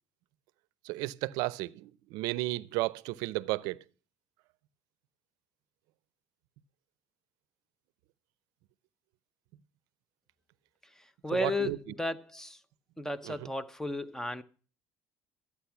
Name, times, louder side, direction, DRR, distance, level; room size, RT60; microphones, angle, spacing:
voice 1, 0.8-3.8 11.3-11.8 13.2-13.5, right 19 dB, 85° right, 0.5 m, -33 dB
voice 2, 11.0-12.6 13.0-14.4, left 2 dB, 5° left, 0.7 m, -34 dB
13.0 x 8.6 x 5.7 m
cardioid pair, 120°, 6 cm